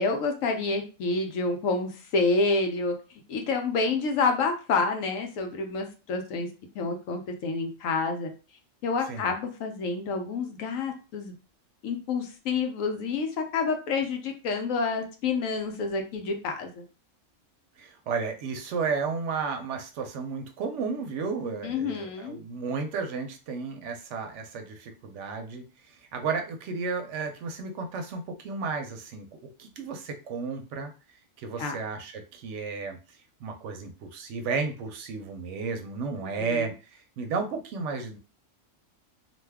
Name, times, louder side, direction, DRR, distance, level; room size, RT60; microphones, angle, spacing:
voice 1, 0.0-2.9 3.3-6.5 6.7-8.3 8.8-11.3 11.8-16.8 21.6-22.4 31.6-31.8 36.2-36.7, left 4 dB, 90° left, 4 dB, 1.1 m, -28 dB
voice 2, 17.8-25.6 26.1-29.3 29.6-30.9 31.4-33.0 33.4-38.2, right 4 dB, 70° right, 5 dB, 0.8 m, -33 dB
2.6 x 2.2 x 3.3 m, 0.33 s
omnidirectional pair, 1.3 m